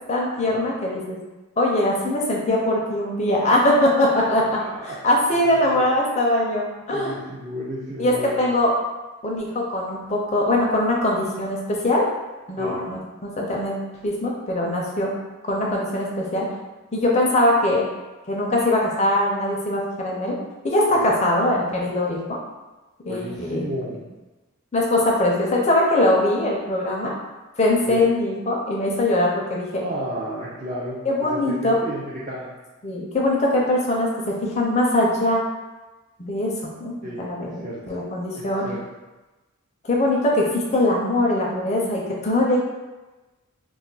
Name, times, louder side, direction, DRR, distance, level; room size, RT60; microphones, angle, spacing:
voice 1, 0.1-1.2 1.6-7.1 8.0-8.7 9.2-12.1 12.5-13.8 14.0-15.1 15.4-16.5 16.9-17.9 18.3-20.4 20.6-22.4 23.0-23.7 24.7-27.1 27.6-29.8 31.1-31.8 32.8-35.4 36.2-36.5 36.8-38.7 39.9-42.6, left 1 dB, 30° left, -2 dB, 0.4 m, -22 dB
voice 2, 4.6-5.0 5.5-5.8 6.9-8.4 12.6-12.8 20.9-21.1 21.9-22.3 23.1-24.0 27.9-28.0 29.8-32.5 37.0-37.8 38.3-38.8, equal, 35° right, -8 dB, 0.4 m, -33 dB
2.3 x 2.1 x 3.8 m, 1.1 s
head